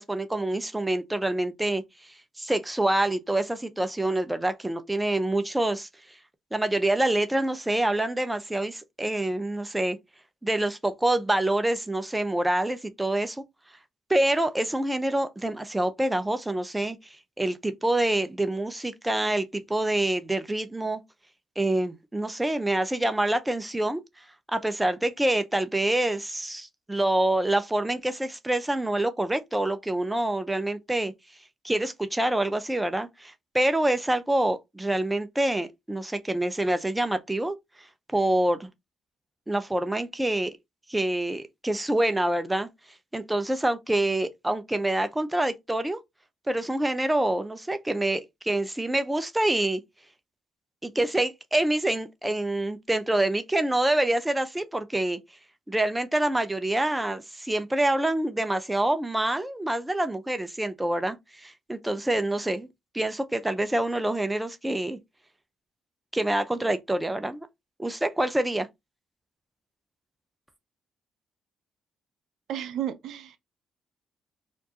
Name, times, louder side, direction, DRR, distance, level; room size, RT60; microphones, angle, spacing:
voice 1, 0.0-1.8 2.4-5.9 6.5-10.0 10.4-13.4 14.1-17.0 17.4-21.0 21.6-24.0 24.5-31.1 31.6-37.6 38.1-38.7 39.5-40.5 40.9-42.7 43.1-46.0 46.5-49.8 50.8-55.2 55.7-62.7 62.9-65.0 66.1-67.5 67.8-68.7, right 1 dB, 10° right, 0.6 m, -26 dB
voice 2, 72.5-73.4, right 11 dB, 80° right, 0.5 m, -32 dB
4.4 x 2.6 x 2.9 m
cardioid pair, 90°, 0 cm